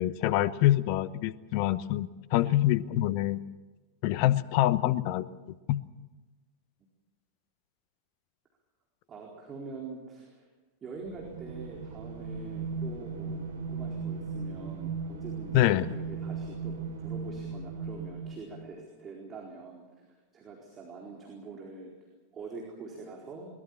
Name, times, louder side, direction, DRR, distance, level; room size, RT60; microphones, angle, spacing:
voice 1, 0.0-3.4 4.0-5.2 5.7-5.8 15.5-15.9, left 14 dB, 45° left, 18 dB, 0.9 m, -25 dB
voice 2, 9.1-10.5 10.8-20.1 20.3-21.9 22.3-23.5, right 4 dB, 25° right, -1 dB, 4.4 m, -44 dB
sound 1, 11.0-18.7, right 5 dB, 65° right, 3.6 m, -37 dB
23.0 x 20.5 x 7.3 m, 1.2 s
figure-of-eight pair, 90°, 0 cm